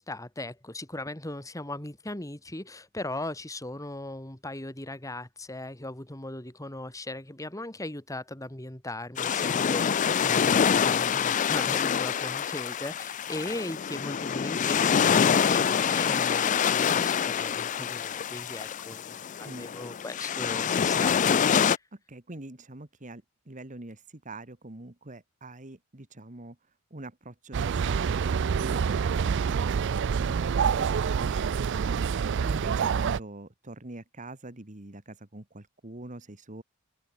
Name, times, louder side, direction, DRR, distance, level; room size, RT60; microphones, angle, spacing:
voice 1, 0.0-21.8, left 1 dB, 15° left, 2.0 m, -38 dB
sound 1, 9.2-21.8, left 7 dB, 35° left, 0.4 m, -26 dB
voice 2, 19.4-19.7 21.9-26.6 26.9-36.6, right 2 dB, 35° right, 1.6 m, -44 dB
sound 2, 27.5-33.2, right 6 dB, 55° right, 0.4 m, -27 dB
open air
head